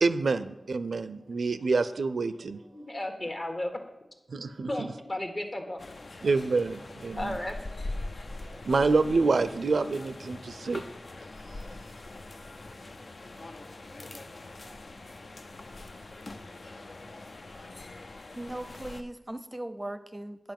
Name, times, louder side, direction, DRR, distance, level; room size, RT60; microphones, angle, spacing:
voice 1, 0.0-2.6 4.3-4.9 6.2-7.4 8.4-10.8, right 4 dB, 90° right, 0.4 m, -27 dB
voice 2, 2.5-3.8 4.7-5.8 7.1-7.6, left 1 dB, 45° left, 1.5 m, -34 dB
sound 1, 5.8-19.0, left 2 dB, 65° left, 0.5 m, -42 dB
voice 3, 18.3-20.5, right 1 dB, 20° right, 0.5 m, -38 dB
9.4 x 4.8 x 7.5 m
wide cardioid pair, 55°, 0 cm